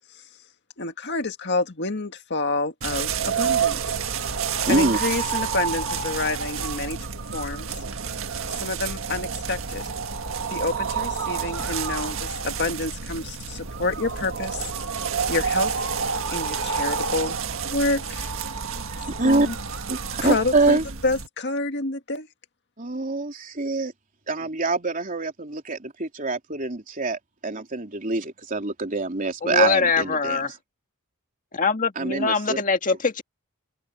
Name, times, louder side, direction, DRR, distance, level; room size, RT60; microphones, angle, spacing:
voice 1, 0.8-3.8 4.7-7.7 8.6-9.8 10.5-14.7 15.3-15.8 16.3-17.4 17.6-18.3 19.2-19.5 20.2-20.8 21.0-22.3, left 3 dB, 55° left, 1.9 m, -28 dB
sound 1, 2.8-21.3, right 6 dB, 65° right, 1.8 m, -29 dB
voice 2, 4.7-5.0 18.9-19.5 19.9-20.8 22.8-23.9 24.3-30.4 32.0-32.6, right 3 dB, 40° right, 3.4 m, -25 dB
voice 3, 29.4-30.5 31.5-33.2, left 4 dB, 40° left, 1.8 m, -23 dB
head